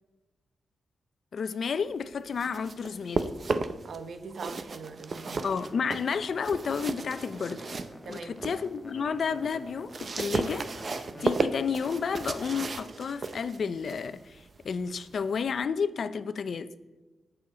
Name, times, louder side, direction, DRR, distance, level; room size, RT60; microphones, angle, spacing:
voice 1, 1.3-3.3 5.4-7.6 8.1-16.7, left 6 dB, 60° left, 0.6 m, -31 dB
sound 1, 2.1-4.0 4.3-8.6 9.1-15.6, right 3 dB, 45° right, 0.7 m, -34 dB
voice 2, 3.8-5.5 8.0-8.4 11.1-11.3, right 4 dB, 65° right, 1.1 m, -42 dB
sound 2, 5.4-12.7, left 1 dB, 5° left, 1.6 m, -47 dB
20.5 x 7.1 x 3.9 m
cardioid pair, 100°, 0 cm